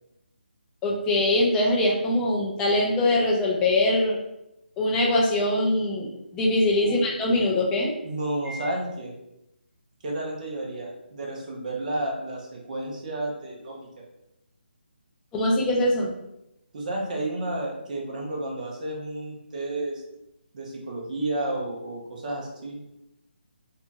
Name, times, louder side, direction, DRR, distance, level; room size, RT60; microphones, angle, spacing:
voice 1, 0.8-4.2 4.8-7.9 8.5-8.7 15.3-16.1, left 1 dB, 10° left, -2 dB, 0.4 m, -23 dB
voice 2, 8.0-9.1 10.0-14.0 16.7-20.0 20.5-22.8, right 1 dB, 45° right, -1 dB, 0.8 m, -31 dB
2.7 x 2.3 x 2.6 m, 0.85 s
figure-of-eight pair, 155°, 6 cm